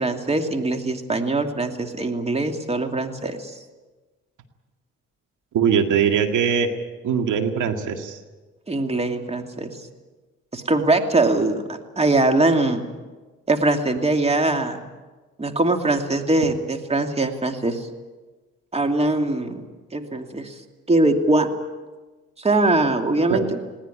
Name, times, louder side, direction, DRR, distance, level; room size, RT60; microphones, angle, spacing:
voice 1, 0.0-3.5 8.7-9.7 10.5-12.8 13.5-14.8 15.4-17.9 18.7-19.6 19.9-20.5 20.9-21.5 22.4-23.6, right 2 dB, 20° right, 5 dB, 2.6 m, -22 dB
voice 2, 5.5-6.7 7.0-8.2 23.3-23.4, right 7 dB, 80° right, 6 dB, 2.0 m, -21 dB
20.5 x 18.0 x 10.0 m, 1.3 s
cardioid pair, 90°, 30 cm